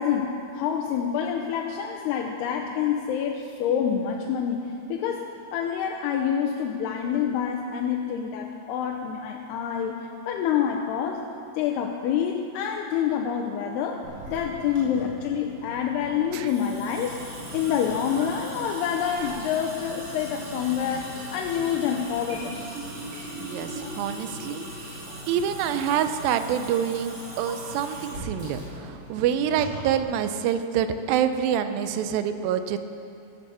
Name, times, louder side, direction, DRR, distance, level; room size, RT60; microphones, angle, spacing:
voice 1, 0.0-11.3 11.6-17.2 17.5-22.6, left 8 dB, 85° left, 1 dB, 2.8 m, -27 dB
Water tap faucet / Sink (filling or washing) / Drip, 14.0-30.0, right 1 dB, 60° right, 5.6 m, -39 dB
voice 2, 23.4-24.6 25.3-32.8, right 9 dB, 80° right, 9 dB, 2.1 m, -26 dB
16.0 x 8.1 x 6.9 m, 2.7 s
omnidirectional pair, 4.7 m